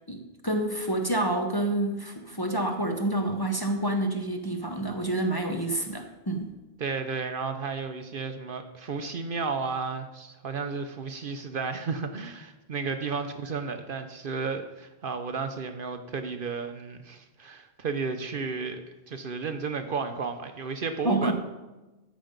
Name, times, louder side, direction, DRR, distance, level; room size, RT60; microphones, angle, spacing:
voice 1, 0.1-6.5 21.0-21.3, right 1 dB, 25° left, 3 dB, 0.8 m, -28 dB
voice 2, 6.8-21.3, right 4 dB, 55° right, 8 dB, 0.8 m, -33 dB
13.5 x 5.3 x 5.1 m, 1.1 s
omnidirectional pair, 1.1 m